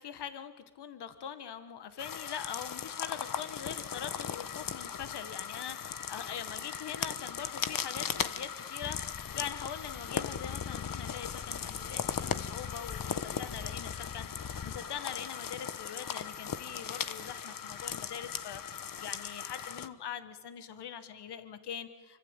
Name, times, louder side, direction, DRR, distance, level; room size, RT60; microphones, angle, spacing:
voice 1, 0.0-22.2, left 8 dB, 85° left, 10 dB, 1.5 m, -43 dB
sound 1, 2.0-19.9, left 7 dB, 55° left, 1.2 m, -38 dB
sound 2, 8.8-15.0, left 7 dB, 40° left, 0.9 m, -44 dB
26.0 x 24.5 x 8.9 m, 1.2 s
cardioid pair, 75°, 39 cm